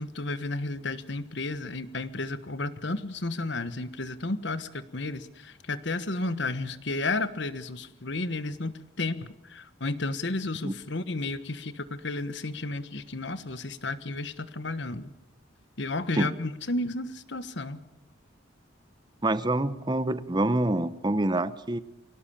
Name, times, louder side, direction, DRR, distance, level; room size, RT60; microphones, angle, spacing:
voice 1, 0.0-15.1 15.8-17.8, left 2 dB, 60° left, 13 dB, 1.3 m, -32 dB
voice 2, 19.2-21.8, right 1 dB, 20° right, 15 dB, 0.8 m, -26 dB
23.5 x 17.5 x 8.6 m, 0.93 s
head